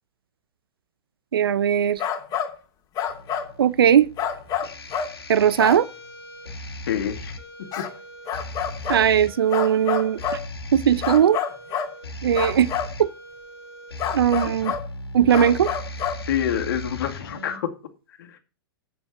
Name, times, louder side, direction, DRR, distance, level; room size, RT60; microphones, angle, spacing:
voice 1, 1.3-2.0 3.6-4.1 5.3-5.9 8.9-10.2 10.7-11.4 12.2-12.7 13.0-13.1 14.1-14.7 15.1-15.7, right 9 dB, 75° right, 0.6 m, -18 dB
sound 1, 2.0-2.5 3.0-3.5 4.2-5.1 5.6-5.8 7.7-7.9 8.3-9.0 9.5-10.4 11.0-11.9 12.3-12.9 14.0-14.9 15.3-16.2, left 8 dB, 35° left, 2.6 m, -27 dB
sound 2, 3.1-17.6, left 1 dB, 90° left, 2.0 m, -38 dB
voice 2, 6.8-7.3 7.8-7.9 16.2-17.7 18.2-18.4, left 9 dB, 65° left, 2.2 m, -27 dB
8.5 x 7.1 x 6.8 m
hypercardioid pair, 110°, 12 cm